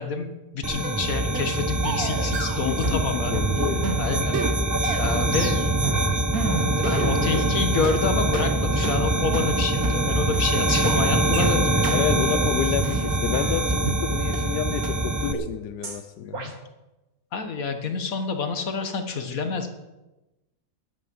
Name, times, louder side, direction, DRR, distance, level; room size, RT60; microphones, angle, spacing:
voice 1, 0.0-3.4 4.0-4.5 5.0-5.8 6.7-12.1 16.2-16.5 17.3-19.7, left 4 dB, 60° left, 7 dB, 1.9 m, -28 dB
sound 1, 0.6-15.3, right 2 dB, 20° right, 0.6 m, -24 dB
sound 2, 0.8-1.0 1.3-1.5 1.8-3.1 3.3-7.5 7.8-8.0 8.3-8.5 8.8-9.0 9.3-9.5 9.8-10.0 10.3-10.5 10.8-11.0 11.3-11.5 11.8-12.0 12.3-12.5 12.8-14.0 14.3-14.4 14.8-14.9 15.3-15.5 15.8-16.0 16.3-16.5, right 3 dB, 65° right, 2.4 m, -30 dB
voice 2, 2.6-3.9 11.9-16.4, left 10 dB, 85° left, 11 dB, 1.2 m, -30 dB
13.5 x 11.5 x 5.5 m, 1.0 s
omnidirectional pair, 1.7 m